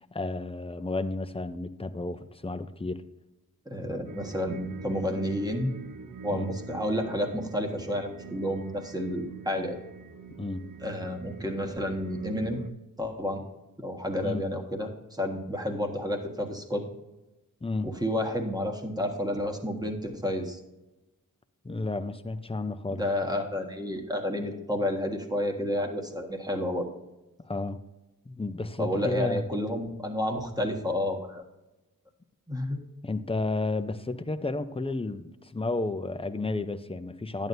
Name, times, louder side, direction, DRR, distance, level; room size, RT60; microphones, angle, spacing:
voice 1, 0.1-3.0 6.3-6.5 10.4-10.6 14.2-14.4 17.6-17.9 21.6-23.0 27.4-27.8 28.3-29.4 33.0-37.5, left 2 dB, 15° left, 0.6 m, -32 dB
voice 2, 3.6-5.7 6.2-9.7 10.8-12.6 13.0-13.4 13.8-16.8 17.8-20.6 22.9-26.9 28.8-31.4 32.5-32.8, left 1 dB, 10° right, 1.5 m, -30 dB
sound 1, 4.1-12.7, right 5 dB, 70° right, 0.7 m, -44 dB
11.0 x 9.2 x 2.7 m
cardioid pair, 55°, 34 cm